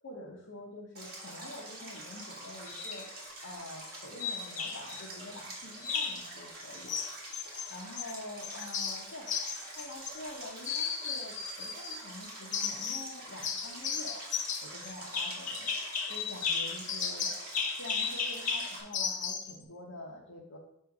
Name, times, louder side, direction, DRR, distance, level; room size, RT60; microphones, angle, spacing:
voice 1, 0.0-3.1 3.4-6.9 7.7-9.3 9.7-14.2 14.6-15.7 16.1-17.3 17.8-20.6, left 1 dB, 70° left, -5 dB, 1.1 m, -46 dB
Stream, 1.0-18.8, right 1 dB, 45° right, 1.8 m, -46 dB
sound 1, 2.7-3.0 4.2-5.0 5.8-6.3 6.9-8.1 8.4-10.4 10.6-12.0 12.5-13.1 13.4-19.5, left 6 dB, 35° left, 0.7 m, -34 dB
6.4 x 3.4 x 5.9 m, 0.76 s
head